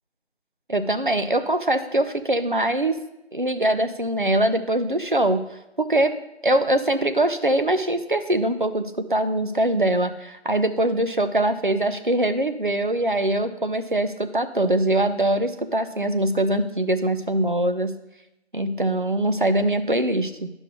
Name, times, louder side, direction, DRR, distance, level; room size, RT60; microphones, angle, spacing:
voice 1, 0.7-2.9 3.3-5.4 5.8-6.1 6.4-18.0 18.5-20.5, right 1 dB, 50° right, 9 dB, 0.4 m, -22 dB
12.0 x 5.3 x 2.3 m, 0.89 s
figure-of-eight pair, 175°, 35 cm